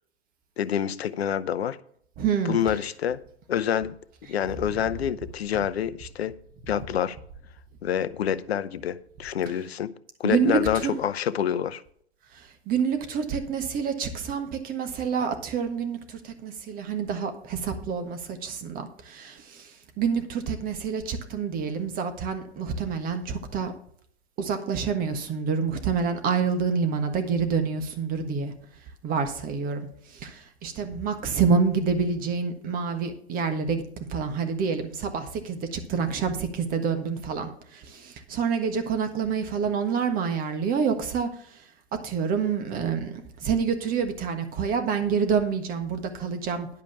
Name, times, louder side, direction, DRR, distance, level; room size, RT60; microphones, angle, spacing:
voice 1, 0.6-1.8 2.4-3.2 3.5-3.9 4.3-6.3 6.7-7.2 7.8-9.9 10.2-11.8, left 9 dB, 70° left, 0.7 m, -27 dB
voice 2, 2.2-2.6 10.2-10.9 12.7-19.4 20.0-23.7 24.4-28.5 29.0-29.8 30.2-30.3 30.6-33.8 34.1-37.5 37.9-41.3 42.0-46.7, right 6 dB, 25° right, 1.4 m, -27 dB
10.5 x 5.1 x 6.9 m
figure-of-eight pair, 110°, 33 cm